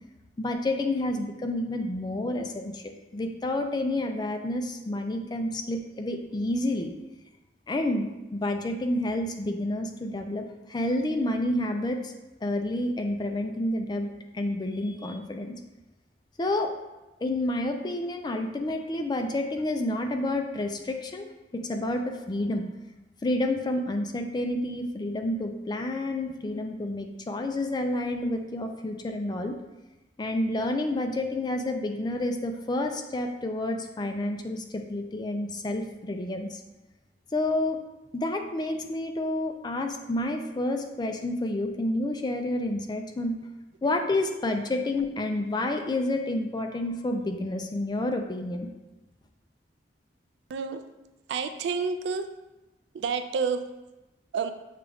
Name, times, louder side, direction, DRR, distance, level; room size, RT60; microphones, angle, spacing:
voice 1, 0.4-6.9 7.7-12.1 12.4-14.1 14.3-15.5 16.4-16.7 17.2-21.3 21.5-22.7 23.2-29.6 30.2-36.6 37.3-37.8 38.1-43.4 43.8-48.7, left 1 dB, 25° left, 4 dB, 0.4 m, -29 dB
voice 2, 50.5-50.8 51.3-52.3 52.9-53.7 54.3-54.5, right 5 dB, 75° right, 8 dB, 0.3 m, -29 dB
6.5 x 2.3 x 3.4 m, 1.0 s
head